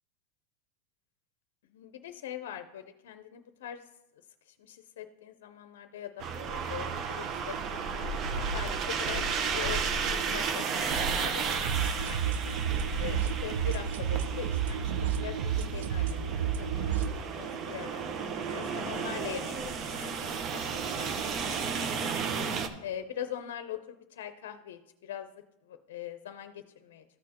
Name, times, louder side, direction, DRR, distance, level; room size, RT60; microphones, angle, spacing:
voice 1, 1.7-3.8 4.5-9.3 9.5-10.7 11.0-12.3 13.0-18.0 18.5-21.5 22.8-25.3 25.7-27.0, left 10 dB, 75° left, 9 dB, 0.5 m, -42 dB
sound 1, 6.2-22.7, right 5 dB, 40° right, 0.8 m, -33 dB
sound 2, 11.6-17.1, right 8 dB, 75° right, 0.5 m, -31 dB
13.5 x 6.3 x 2.9 m, 0.87 s
hypercardioid pair, 115°, 0 cm